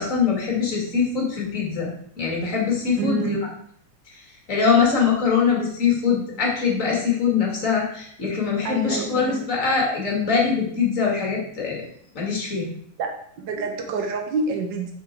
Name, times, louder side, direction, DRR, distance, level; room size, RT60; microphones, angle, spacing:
voice 1, 0.0-1.9 2.2-3.4 4.5-11.8 12.1-12.7, left 6 dB, 25° left, -1 dB, 2.4 m, -22 dB
voice 2, 3.0-3.4 8.6-9.5 13.0-14.9, right 4 dB, 80° right, 3 dB, 1.0 m, -27 dB
8.0 x 6.2 x 4.6 m, 0.64 s
omnidirectional pair, 3.7 m